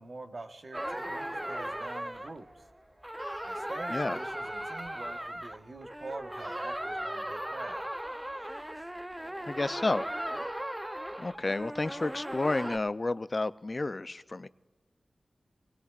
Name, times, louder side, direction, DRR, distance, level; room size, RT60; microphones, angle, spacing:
voice 1, 0.0-2.6 3.4-7.9, right 2 dB, 60° right, 5 dB, 1.2 m, -45 dB
sound 1, 0.7-12.8, right 1 dB, 15° right, 0.6 m, -37 dB
voice 2, 9.4-10.1 11.2-14.5, left 2 dB, 40° left, 14 dB, 0.4 m, -31 dB
27.0 x 19.5 x 2.4 m, 1.2 s
wide cardioid pair, 65°, 0 cm